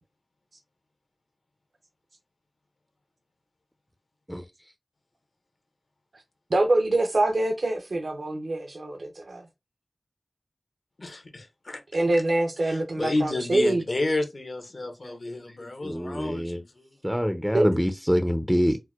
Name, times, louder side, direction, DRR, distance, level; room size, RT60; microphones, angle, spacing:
voice 1, 6.5-9.4 11.9-13.8 17.5-17.7, right 2 dB, 85° right, 0.6 m, -25 dB
voice 2, 11.0-11.8 12.6-16.9, left 2 dB, 65° left, 0.7 m, -31 dB
voice 3, 15.0-16.6 17.0-18.8, equal, ahead, 0.3 m, -26 dB
4.4 x 2.0 x 2.3 m
wide cardioid pair, 50°, 0 cm